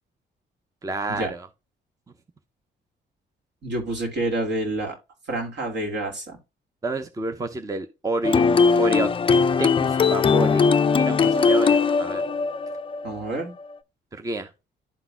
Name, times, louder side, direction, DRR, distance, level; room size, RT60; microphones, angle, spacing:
voice 1, 0.8-1.5 6.8-8.4 8.8-9.1 9.6-10.7 10.9-12.2 14.1-14.5, right 2 dB, 15° right, 0.6 m, -28 dB
voice 2, 3.6-5.0 5.3-6.4 13.0-13.5, right 2 dB, 60° right, 2.5 m, -28 dB
sound 1, 8.2-13.8, left 5 dB, 25° left, 0.4 m, -20 dB
11.5 x 3.9 x 2.3 m
cardioid pair, 90°, 20 cm